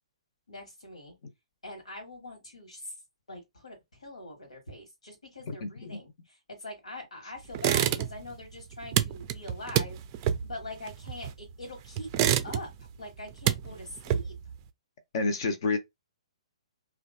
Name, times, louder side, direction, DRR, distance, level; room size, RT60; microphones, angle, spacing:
voice 1, 0.5-1.1 1.6-3.0 3.3-10.0 10.4-14.4, left 1 dB, 80° left, 1.2 m, -43 dB
voice 2, 5.5-6.0 15.1-15.8, left 3 dB, 50° left, 0.6 m, -29 dB
sound 1, 7.5-8.3 8.6-11.5 12.0-12.9 13.2-14.5, right 11 dB, 35° right, 0.4 m, -28 dB
3.1 x 2.3 x 2.5 m
figure-of-eight pair, 125°, 3 cm